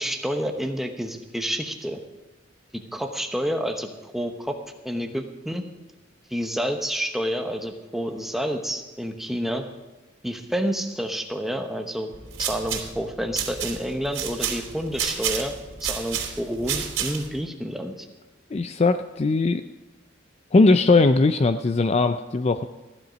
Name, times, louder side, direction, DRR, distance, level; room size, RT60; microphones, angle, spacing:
voice 1, 0.0-2.0 2.7-4.6 4.8-5.6 6.3-9.6 10.2-12.1 12.4-15.5 15.8-18.1, equal, ahead, 5 dB, 1.0 m, -29 dB
sound 1, 12.1-17.4, right 8 dB, 85° right, 3.3 m, -30 dB
voice 2, 18.5-19.6 20.5-22.6, left 3 dB, 30° left, 10 dB, 0.4 m, -19 dB
14.5 x 11.0 x 5.1 m, 1.1 s
head